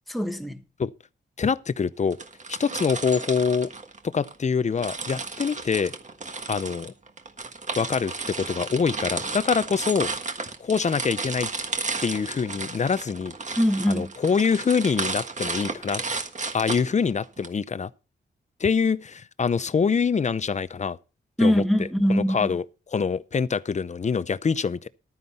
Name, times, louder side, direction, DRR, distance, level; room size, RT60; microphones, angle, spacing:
voice 1, 0.1-0.6 13.6-14.1 21.4-22.6, equal, ahead, 1.2 m, -23 dB
voice 2, 1.4-2.2 2.5-3.7 4.0-5.9 6.5-6.9 7.8-10.1 10.6-11.5 12.0-13.3 13.9-16.0 16.5-17.9 18.6-21.0 21.4-21.6 22.1-24.9, left 5 dB, 35° left, 0.6 m, -25 dB
sound 1, 2.1-4.4 4.8-17.5, right 3 dB, 35° right, 1.5 m, -33 dB
12.5 x 9.5 x 4.2 m
wide cardioid pair, 110°, 20 cm